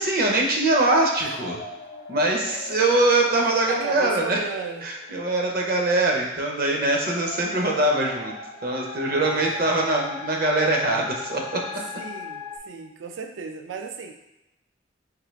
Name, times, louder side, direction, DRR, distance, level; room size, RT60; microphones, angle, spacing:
voice 1, 0.0-1.6 2.1-4.4 4.8-8.3 8.6-11.4, right 2 dB, 55° right, 0 dB, 0.7 m, -22 dB
sound 1, 0.7-12.6, left 4 dB, 60° left, 0.5 m, -39 dB
voice 2, 2.5-2.8 3.7-4.9 9.0-9.9 11.7-14.1, right 5 dB, 85° right, 6 dB, 0.4 m, -36 dB
3.7 x 3.2 x 3.2 m, 0.92 s
head